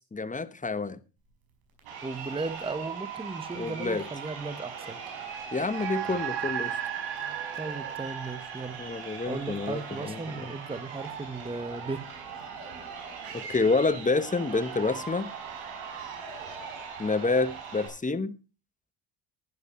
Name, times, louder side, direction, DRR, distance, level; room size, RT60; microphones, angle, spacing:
voice 1, 0.1-1.0 3.5-4.0 5.5-6.8 8.8-10.5 13.3-15.3 17.0-18.4, left 3 dB, 15° left, 1.1 m, -28 dB
Crowd, 1.8-17.9, right 6 dB, 85° right, 5.1 m, -40 dB
voice 2, 2.0-5.0 7.6-8.9 9.3-12.1, right 3 dB, 10° right, 1.1 m, -36 dB
sound 1, 5.6-10.3, right 10 dB, 55° right, 1.8 m, -36 dB
11.5 x 11.0 x 4.3 m
supercardioid pair, 75°, 48 cm